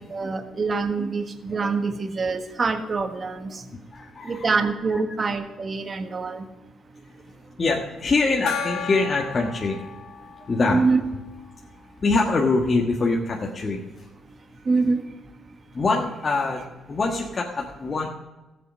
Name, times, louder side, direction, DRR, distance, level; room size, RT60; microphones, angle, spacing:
voice 1, 0.1-3.6 4.2-6.4 10.7-11.0 14.7-15.0, right 4 dB, 35° right, 8 dB, 1.4 m, -25 dB
voice 2, 3.7-4.6 4.9-5.0 7.0-7.1 7.6-9.9 10.5-10.8 12.0-14.1 15.7-18.1, left 3 dB, 35° left, -1 dB, 1.5 m, -24 dB
Gong, 8.5-11.7, left 6 dB, 90° left, 1.7 m, -34 dB
14.5 x 8.0 x 6.2 m, 1.1 s
cardioid pair, 90°, 0 cm